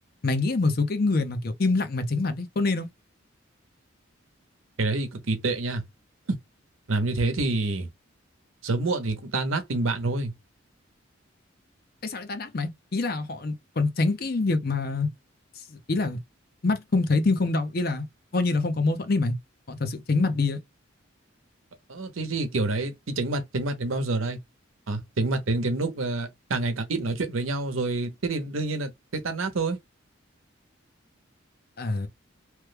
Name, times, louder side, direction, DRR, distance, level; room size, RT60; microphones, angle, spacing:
voice 1, 0.2-2.9 12.0-15.1 15.7-16.2 16.6-18.1 18.3-19.3 19.7-20.6 31.8-32.1, left 3 dB, 50° left, 0.6 m, -25 dB
voice 2, 4.8-5.8 6.3-6.4 6.9-7.9 8.6-10.3 21.9-24.4 24.9-29.8, right 2 dB, 85° right, 0.8 m, -27 dB
3.0 x 2.2 x 3.3 m
head